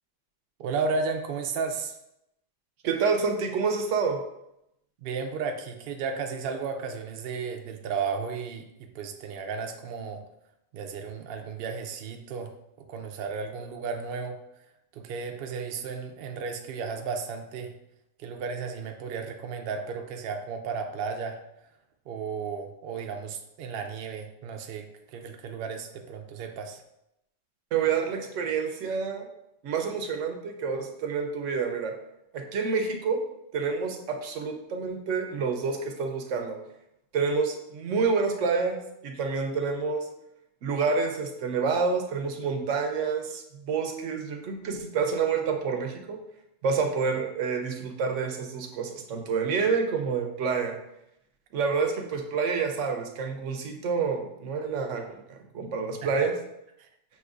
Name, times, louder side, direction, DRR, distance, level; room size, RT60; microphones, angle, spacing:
voice 1, 0.6-1.9 5.0-10.2 10.7-12.5 12.8-14.4 14.9-17.7 18.2-21.4 22.1-26.8 56.0-56.1 56.8-56.9, right 5 dB, 60° right, 4 dB, 0.6 m, -34 dB
voice 2, 2.8-4.2 27.7-29.2 29.6-31.9 32.3-33.2 33.5-36.6 37.1-40.1 40.6-46.2 46.6-50.8 51.5-56.4, right 5 dB, 80° right, 4 dB, 1.0 m, -28 dB
6.2 x 2.9 x 2.4 m, 0.83 s
omnidirectional pair, 1.3 m